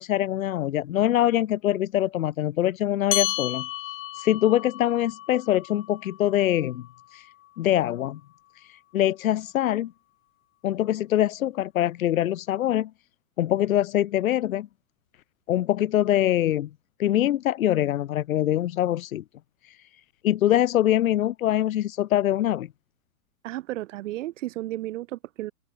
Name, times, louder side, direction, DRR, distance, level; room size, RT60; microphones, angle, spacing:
voice 1, 0.0-3.7 4.2-6.8 7.1-7.2 7.6-8.2 8.9-9.9 10.6-12.9 13.4-14.7 15.5-16.7 17.0-19.2 20.2-22.7, left 12 dB, 75° left, 1.3 m, -23 dB
sound 1, 3.1-7.9, left 16 dB, 30° left, 1.9 m, -34 dB
voice 2, 23.4-25.5, right 16 dB, 60° right, 1.6 m, -33 dB
open air
hypercardioid pair, 125°, 42 cm